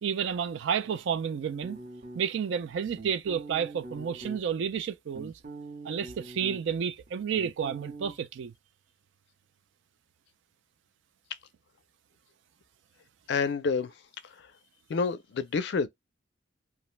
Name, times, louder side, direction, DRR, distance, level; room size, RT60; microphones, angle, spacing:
voice 1, 0.0-1.8 2.1-5.3 5.8-8.5, right 7 dB, 70° right, 0.3 m, -31 dB
sound 1, 1.6-2.5 2.9-4.4 4.9-6.8 7.1-8.1, right 2 dB, 40° right, 0.7 m, -43 dB
voice 2, 13.3-13.9 14.2-14.5 14.9-15.9, left 5 dB, 60° left, 0.4 m, -28 dB
2.4 x 2.1 x 3.1 m
head